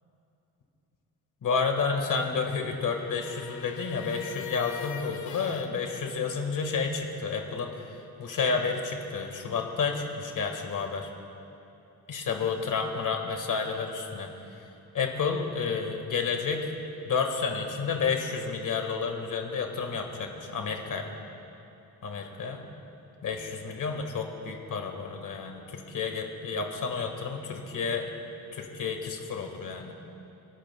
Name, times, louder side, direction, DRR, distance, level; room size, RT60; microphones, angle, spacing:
voice 1, 1.4-11.1 12.1-14.6 14.9-16.7 17.1-21.1 22.0-22.7 23.2-28.1 28.5-29.9, left 5 dB, 60° left, 3 dB, 1.6 m, -30 dB
sound 1, 2.1-5.7, left 8 dB, 85° left, 1.1 m, -42 dB
30.0 x 12.0 x 2.2 m, 2.9 s
wide cardioid pair, 150°, 36 cm